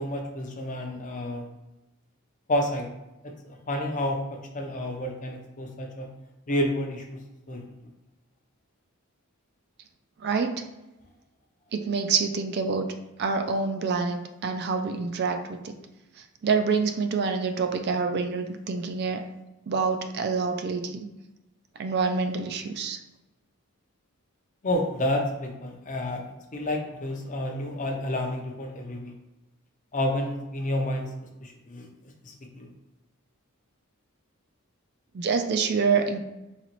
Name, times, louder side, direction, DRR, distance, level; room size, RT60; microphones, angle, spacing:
voice 1, 0.0-1.5 2.5-2.9 3.2-6.1 6.5-7.6 24.6-26.2 26.5-29.1 29.9-31.9 32.2-32.7, left 1 dB, 35° left, 2 dB, 0.5 m, -30 dB
voice 2, 11.7-12.9 13.2-15.7 16.4-19.2 19.7-21.1 21.8-23.0 35.1-36.2, right 5 dB, 50° right, 6 dB, 0.3 m, -26 dB
4.1 x 2.9 x 2.9 m, 0.98 s
head